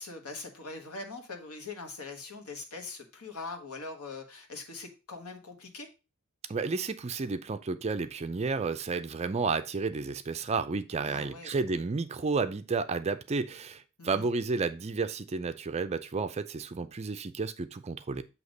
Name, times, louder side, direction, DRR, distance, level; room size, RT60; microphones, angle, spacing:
voice 1, 0.0-5.9 11.0-11.5 14.0-14.2, left 3 dB, 80° left, 1.4 m, -42 dB
voice 2, 6.5-18.2, right 4 dB, 30° right, 0.4 m, -31 dB
8.1 x 2.9 x 5.2 m
head